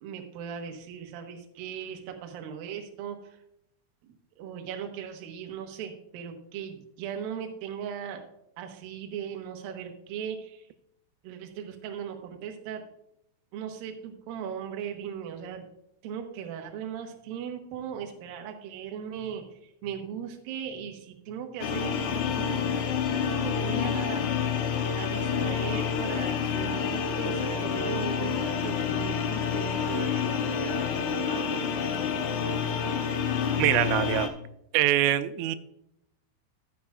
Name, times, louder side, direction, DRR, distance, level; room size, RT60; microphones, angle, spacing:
voice 1, 0.0-3.4 4.0-8.2 8.6-10.7 11.2-12.8 13.5-15.7 16.0-22.6 23.1-24.3 24.9-31.7, right 8 dB, 70° right, 3 dB, 2.3 m, -38 dB
sound 1, 21.6-34.3, left 7 dB, 70° left, 2.8 m, -28 dB
voice 2, 33.6-34.3 34.7-35.6, right 14 dB, 90° right, 12 dB, 3.1 m, -24 dB
14.0 x 8.4 x 2.4 m, 0.80 s
omnidirectional pair, 5.6 m